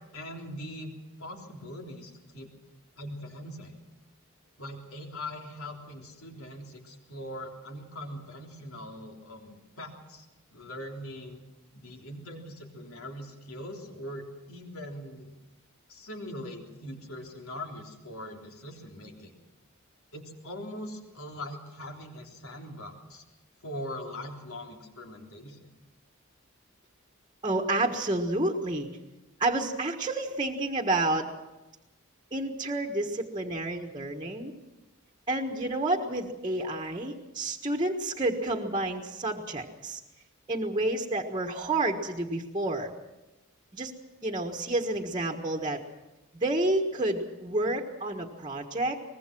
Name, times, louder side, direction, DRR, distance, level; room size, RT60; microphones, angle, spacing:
voice 1, 0.1-0.9 1.2-2.5 3.0-3.7 4.6-10.3 10.5-11.4 11.7-15.3 15.9-19.3 20.1-23.2 23.6-25.7 44.9-45.0, left 1 dB, 75° left, 1 dB, 3.6 m, -41 dB
voice 2, 27.4-28.9 29.4-31.3 32.3-34.5 35.3-40.0 40.5-42.9 43.7-43.9 44.2-45.8 46.3-49.0, right 2 dB, 20° right, 2 dB, 1.5 m, -29 dB
23.5 x 20.5 x 6.1 m, 1.1 s
head